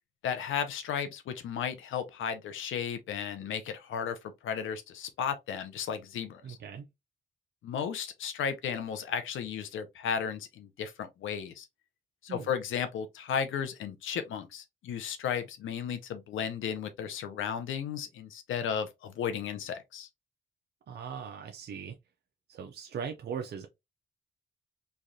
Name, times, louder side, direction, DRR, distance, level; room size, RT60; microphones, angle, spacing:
voice 1, 0.2-4.1 4.4-6.6 7.6-11.7 12.2-20.1, left 7 dB, 85° left, 0.6 m, -34 dB
voice 2, 6.4-6.9 12.3-12.5 20.9-22.0 22.5-23.7, right 7 dB, 55° right, 0.5 m, -39 dB
3.2 x 2.3 x 2.6 m
cardioid pair, 80°, 20 cm